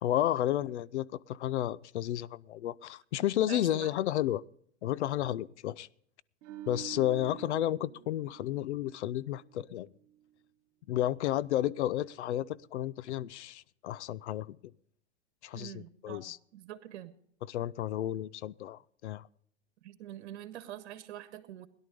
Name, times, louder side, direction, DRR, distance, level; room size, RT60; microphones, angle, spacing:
voice 1, 0.0-4.4 4.8-5.9 6.7-9.9 10.9-14.6 15.4-16.4 17.5-19.3, left 13 dB, 70° left, 0.7 m, -32 dB
voice 2, 3.4-3.9 15.5-17.1 19.8-21.7, right 12 dB, 65° right, 1.6 m, -45 dB
sound 1, 6.4-9.7 10.0-10.2, right 12 dB, 40° right, 1.4 m, -47 dB
17.5 x 11.0 x 5.2 m
hypercardioid pair, 125°, 35 cm